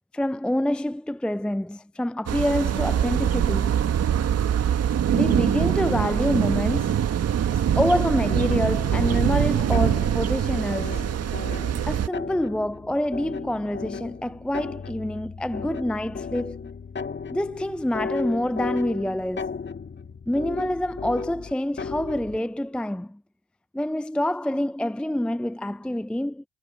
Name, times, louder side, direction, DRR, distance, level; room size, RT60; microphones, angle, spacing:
voice 1, 0.1-3.8 5.1-7.0 7.5-11.0 11.9-16.7 17.3-19.5 20.3-23.2 23.7-26.4, left 1 dB, 5° left, 0.5 m, -27 dB
sound 1, 2.3-12.1, right 9 dB, 55° right, 1.7 m, -23 dB
sound 2, 8.3-22.4, left 5 dB, 40° left, 1.7 m, -36 dB
supercardioid pair, 60°, 29 cm